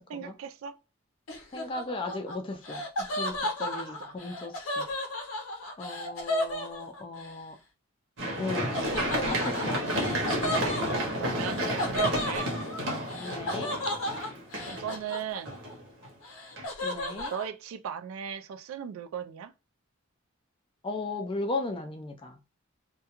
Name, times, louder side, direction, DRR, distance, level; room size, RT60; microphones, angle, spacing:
voice 1, 0.1-0.8 3.6-4.1 10.9-12.5 14.7-15.6 16.9-19.5, right 8 dB, 80° right, 0.3 m, -38 dB
Laughter, 1.3-7.3 8.7-15.7 16.0-17.4, left 1 dB, 90° left, 0.6 m, -34 dB
voice 2, 1.5-2.8 3.2-4.9 5.8-7.6 8.4-8.9 9.2-9.8 11.6-11.8 13.1-13.7 16.8-17.3 20.8-22.4, left 2 dB, 25° left, 0.3 m, -36 dB
Run, 8.2-16.1 16.6-16.7, equal, 60° right, 0.8 m, -31 dB
2.3 x 2.2 x 2.8 m
head